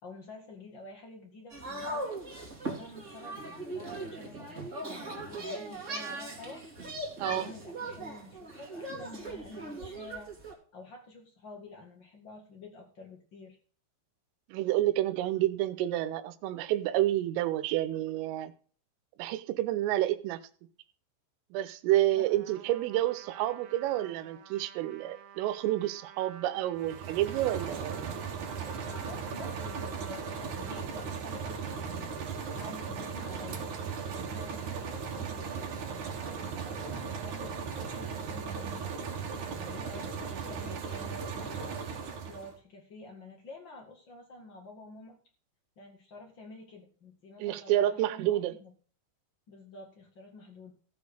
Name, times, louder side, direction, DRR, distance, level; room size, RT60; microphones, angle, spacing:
voice 1, 0.0-2.2 2.6-6.6 7.3-10.3 10.7-13.6 22.1-22.3 28.8-32.1 32.5-33.7 34.1-35.7 36.2-38.9 39.4-41.8 42.3-45.2 45.7-48.7 49.5-50.7, left 2 dB, 85° left, 1.0 m, -49 dB
sound 1, 1.5-10.5, right 2 dB, 25° right, 1.7 m, -39 dB
voice 2, 14.5-18.5 19.2-20.4 21.5-28.2 47.4-48.6, right 14 dB, 90° right, 3.4 m, -29 dB
Trumpet, 22.2-30.8, right 8 dB, 70° right, 2.4 m, -51 dB
sound 2, 26.8-42.6, right 6 dB, 55° right, 2.5 m, -37 dB
16.0 x 5.4 x 6.3 m
omnidirectional pair, 5.8 m